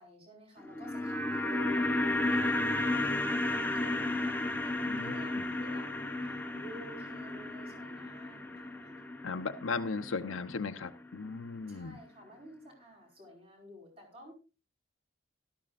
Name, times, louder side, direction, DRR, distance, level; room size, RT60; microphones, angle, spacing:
voice 1, 0.0-5.9 6.2-9.0 11.7-14.3, right 1 dB, 30° right, 0 dB, 4.8 m, -52 dB
sound 1, 0.6-10.9 11.1-11.2, left 2 dB, 10° left, 0.9 m, -33 dB
voice 2, 4.9-5.4 9.2-12.0, left 4 dB, 85° left, 6 dB, 0.7 m, -37 dB
16.5 x 13.0 x 2.5 m, 0.31 s
head